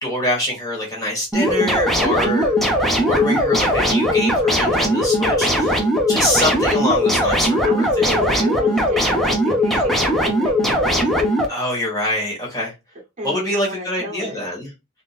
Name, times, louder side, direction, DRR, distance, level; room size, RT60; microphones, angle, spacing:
voice 1, 0.0-5.8 6.1-8.0 11.5-12.7 13.2-14.7, left 1 dB, 15° left, 1.3 m, -25 dB
sound 1, 1.3-11.5, equal, ahead, 0.7 m, -19 dB
voice 2, 7.6-11.6 13.2-14.5, right 1 dB, 35° right, 0.8 m, -32 dB
3.6 x 2.6 x 2.3 m
head